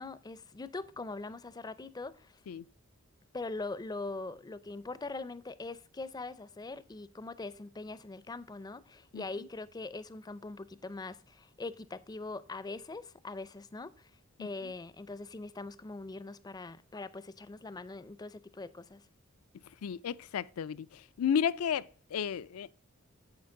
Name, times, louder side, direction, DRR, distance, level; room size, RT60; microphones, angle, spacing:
voice 1, 0.0-2.4 3.3-14.1 14.4-19.1, left 3 dB, 20° left, 0.4 m, -42 dB
voice 2, 19.8-20.9 21.2-22.7, left 8 dB, 85° left, 0.4 m, -32 dB
9.7 x 7.5 x 3.7 m
head